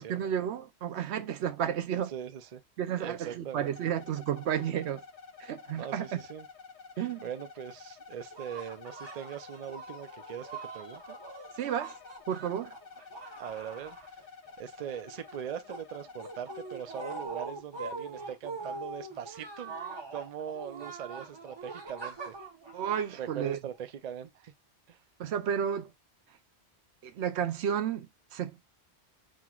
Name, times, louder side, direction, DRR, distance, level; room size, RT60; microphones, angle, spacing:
voice 1, 0.0-2.1 2.8-5.0 5.4-6.2 7.0-7.3 11.6-12.0 12.3-12.7 22.7-23.6 25.2-25.9 27.0-28.6, right 9 dB, 75° right, 0.9 m, -32 dB
voice 2, 2.1-2.6 3.0-3.9 5.7-6.5 7.2-11.2 13.4-14.0 14.6-19.7 20.1-22.3 23.2-24.5 24.9-25.0, right 9 dB, 50° right, 0.5 m, -41 dB
sound 1, 3.7-17.3, left 5 dB, 45° left, 0.8 m, -50 dB
sound 2, 8.3-14.5 14.8-23.8, right 3 dB, 25° right, 1.1 m, -43 dB
5.8 x 3.1 x 2.3 m
omnidirectional pair, 1.1 m